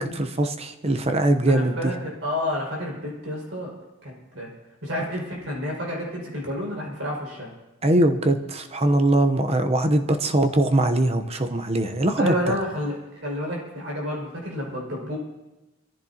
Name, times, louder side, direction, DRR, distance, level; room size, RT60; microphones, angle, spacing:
voice 1, 0.0-1.9 7.8-12.4, right 1 dB, 30° right, 7 dB, 0.9 m, -21 dB
voice 2, 1.5-3.7 4.0-4.5 4.8-7.5 12.2-15.2, equal, 60° right, -2 dB, 5.9 m, -30 dB
24.5 x 14.5 x 2.9 m, 1.0 s
head